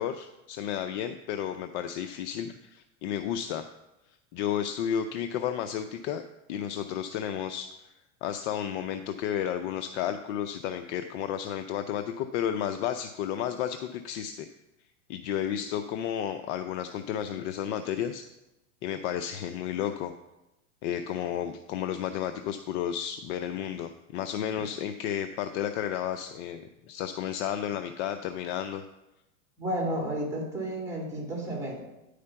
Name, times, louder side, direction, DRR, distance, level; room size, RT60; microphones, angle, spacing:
voice 1, 0.0-3.7 4.3-6.2 6.5-7.7 8.2-14.5 15.1-18.2 18.8-20.1 20.8-28.8, left 9 dB, 60° left, 8 dB, 0.6 m, -32 dB
voice 2, 29.6-31.8, right 1 dB, 5° right, -1 dB, 2.7 m, -32 dB
9.7 x 5.0 x 5.6 m, 0.94 s
supercardioid pair, 130°, 39 cm